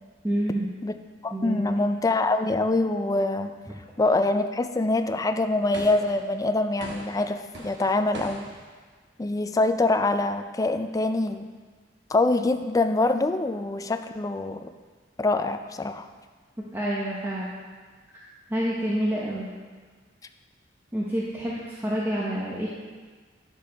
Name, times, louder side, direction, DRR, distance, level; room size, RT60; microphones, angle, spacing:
voice 1, 0.2-0.7 1.3-1.8 16.7-17.5 18.5-19.5 20.9-22.7, right 1 dB, 10° right, -6 dB, 0.9 m, -28 dB
voice 2, 1.2-3.5 4.0-8.4 9.2-11.5 12.1-14.7 15.2-16.1, left 2 dB, 20° left, 8 dB, 0.4 m, -24 dB
sound 1, 5.7-6.3 6.8-8.7, right 1 dB, 70° right, 1.2 m, -41 dB
10.0 x 6.7 x 3.4 m, 1.5 s
head